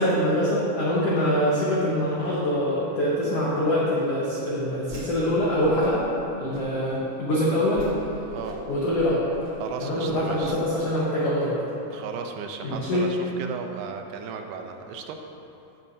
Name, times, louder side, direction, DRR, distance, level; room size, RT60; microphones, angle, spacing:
voice 1, 0.0-6.0 6.4-7.9 8.7-9.2 9.8-11.6 12.6-13.1, equal, 80° left, -6 dB, 1.3 m, -24 dB
Whoosh swoosh swish, 4.8-5.3 5.6-6.1 6.5-7.0 7.4-7.5 7.7-7.9 8.3-10.5, right 1 dB, 35° right, 2.5 m, -39 dB
voice 2, 9.6-10.6 11.9-15.2, right 6 dB, 85° right, 4 dB, 2.7 m, -35 dB
15.5 x 8.7 x 2.7 m, 2.9 s
omnidirectional pair, 4.7 m